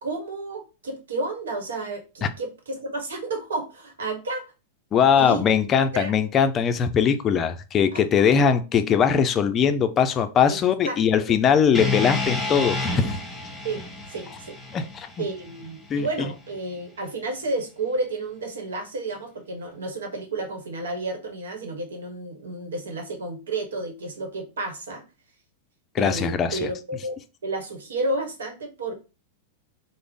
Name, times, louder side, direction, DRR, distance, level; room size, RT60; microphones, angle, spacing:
voice 1, 0.0-4.4 5.1-5.5 5.9-6.1 7.9-8.0 10.5-10.6 10.8-11.0 13.6-13.8 14.1-14.6 15.2-25.0 26.0-27.1 27.4-28.9, right 2 dB, 85° right, 0.9 m, -31 dB
voice 2, 4.9-13.1 14.7-15.2 15.9-16.1 25.9-26.6, left 7 dB, 30° left, 0.4 m, -21 dB
sound 1, 11.7-15.9, left 2 dB, 5° left, 1.0 m, -30 dB
3.5 x 2.0 x 3.6 m
hypercardioid pair, 115°, 0 cm